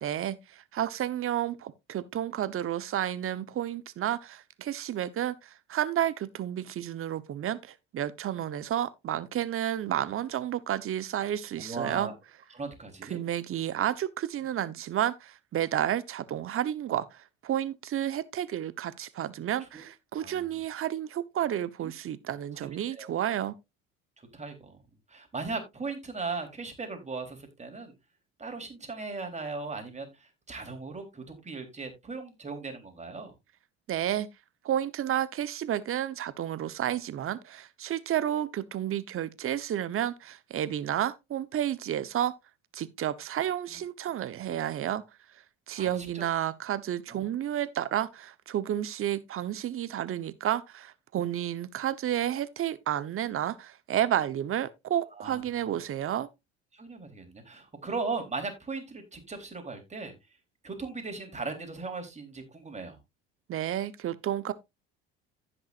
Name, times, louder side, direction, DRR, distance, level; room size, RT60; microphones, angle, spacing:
voice 1, 0.0-12.1 13.1-23.5 33.9-34.3 34.6-42.3 42.7-45.0 45.7-56.3 63.5-64.5, right 11 dB, 45° right, 1.1 m, -31 dB
voice 2, 11.6-12.1 12.5-13.2 19.6-19.9 20.2-20.6 21.8-21.9 22.7-23.1 24.2-24.8 25.1-27.9 28.4-33.3 43.7-43.8 45.8-46.2 47.1-47.2 55.2-55.8 56.7-60.1 60.6-63.0, right 4 dB, 20° right, 3.7 m, -38 dB
15.5 x 6.1 x 2.6 m
hypercardioid pair, 75°, 30 cm